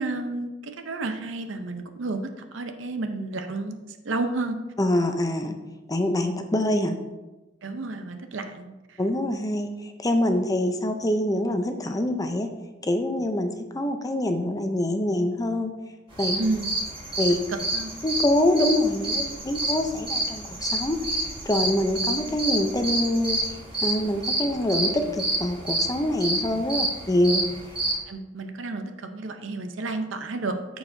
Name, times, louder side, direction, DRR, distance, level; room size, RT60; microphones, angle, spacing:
voice 1, 0.0-3.8 4.0-4.6 7.6-9.0 16.4-16.8 17.5-17.9 26.8-26.9 28.1-30.8, right 2 dB, 80° right, 7 dB, 0.7 m, -31 dB
voice 2, 4.8-5.6 5.9-7.0 9.0-12.5 12.8-15.7 16.2-16.4 17.2-17.4 18.0-21.0 21.5-23.4 23.8-27.4, left 1 dB, 20° left, 6 dB, 0.5 m, -25 dB
sound 1, 16.1-27.9, right 1 dB, 30° right, 2.5 m, -28 dB
14.0 x 4.7 x 2.6 m, 1.1 s
head